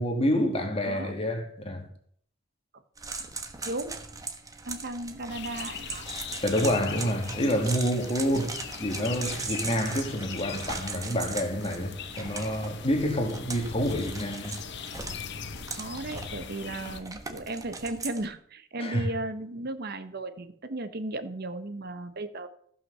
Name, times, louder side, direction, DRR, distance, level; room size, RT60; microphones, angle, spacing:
voice 1, 0.0-1.9 6.4-14.6 18.8-19.1, equal, 30° left, 1.9 m, -28 dB
sound 1, 3.0-18.3, right 4 dB, 15° right, 1.2 m, -39 dB
voice 2, 4.6-6.1 8.3-8.5 15.7-22.5, right 2 dB, 50° right, 0.9 m, -35 dB
sound 2, 5.3-17.0, left 6 dB, 60° left, 1.0 m, -40 dB
15.0 x 5.9 x 6.6 m
head